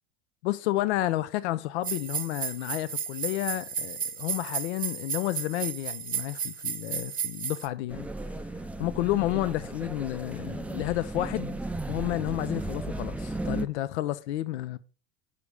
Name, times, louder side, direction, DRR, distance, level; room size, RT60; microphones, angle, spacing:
voice 1, 0.4-8.1 8.4-8.5 8.8-11.6 11.9-14.8, left 15 dB, 75° left, 0.5 m, -31 dB
sound 1, 1.8-7.7, right 7 dB, 25° right, 0.8 m, -33 dB
sound 2, 7.9-13.7, right 2 dB, 5° right, 0.4 m, -35 dB
6.8 x 5.0 x 4.7 m
hypercardioid pair, 90°, 33 cm